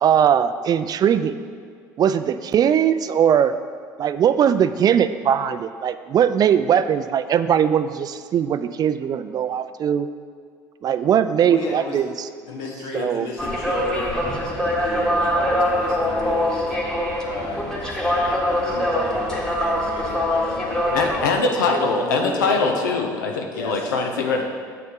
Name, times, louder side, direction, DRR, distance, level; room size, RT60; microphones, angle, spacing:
voice 1, 0.0-1.4 2.0-3.5 4.0-10.1 10.8-12.1 12.9-13.3, right 8 dB, 40° right, 12 dB, 0.3 m, -20 dB
voice 2, 11.5-12.0 12.4-14.2 14.6-16.8 17.2-22.8 23.5-23.9, left 2 dB, 65° left, -1 dB, 1.4 m, -33 dB
sound 1, 13.4-21.3, equal, 5° left, 1.5 m, -23 dB
voice 3, 20.9-24.4, left 3 dB, 85° left, 3 dB, 0.6 m, -22 dB
7.7 x 6.4 x 3.6 m, 2.1 s
hypercardioid pair, 65°, 10 cm